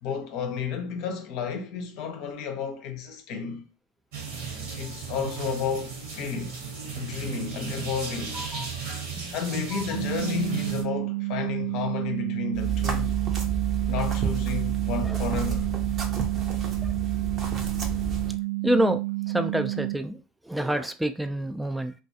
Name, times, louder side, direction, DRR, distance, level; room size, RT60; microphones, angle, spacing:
voice 1, 0.0-3.7 4.8-6.5 7.0-8.4 9.3-13.2 13.9-15.7, left 7 dB, 60° left, 0.6 m, -32 dB
sound 1, 4.1-10.8, right 5 dB, 70° right, 1.0 m, -35 dB
voice 2, 8.3-9.5 9.7-9.8 15.0-15.2 16.8-16.9 18.6-19.0 19.3-21.9, right 1 dB, 5° right, 0.3 m, -28 dB
sound 2, 9.9-19.9, right 21 dB, 85° right, 0.7 m, -30 dB
sound 3, 12.5-18.4, right 7 dB, 45° right, 0.6 m, -29 dB
2.3 x 2.2 x 2.7 m
hypercardioid pair, 75°, 0 cm